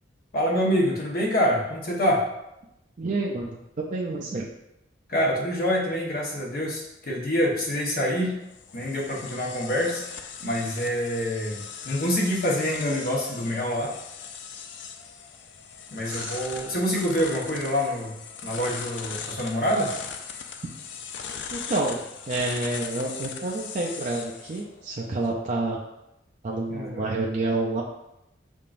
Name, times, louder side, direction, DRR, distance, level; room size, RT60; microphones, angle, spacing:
voice 1, 0.3-2.3 5.1-8.3 8.7-10.0 10.4-13.9 15.9-18.2 18.4-19.9 26.7-27.0, equal, 55° left, -3 dB, 1.1 m, -26 dB
voice 2, 3.0-4.4 16.1-16.4 21.5-25.8 26.4-27.8, right 2 dB, 45° right, -2 dB, 0.4 m, -29 dB
sound 1, 8.1-25.3, left 7 dB, 70° left, 0.4 m, -39 dB
5.6 x 3.6 x 2.5 m, 0.86 s
head